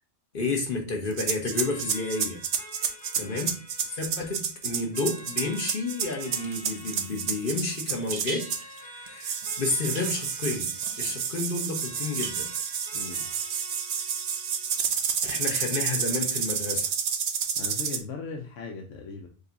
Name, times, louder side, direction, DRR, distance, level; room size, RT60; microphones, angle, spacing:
voice 1, 0.3-2.4 3.2-3.5 3.9-8.5 8.8-12.5 15.2-16.9, left 3 dB, 50° left, 1 dB, 1.1 m, -31 dB
sound 1, 1.1-8.8 9.2-18.0, right 7 dB, 75° right, 1.0 m, -30 dB
sound 2, 1.5-16.5, equal, 20° left, 1.0 m, -48 dB
sound 3, 5.2-5.5 6.0-11.2 11.6-11.7 12.0-12.9, right 5 dB, 50° right, 0.8 m, -43 dB
voice 2, 12.9-13.3 17.5-19.3, left 4 dB, 85° left, 2 dB, 1.0 m, -38 dB
5.3 x 2.3 x 3.9 m, 0.39 s
omnidirectional pair, 1.2 m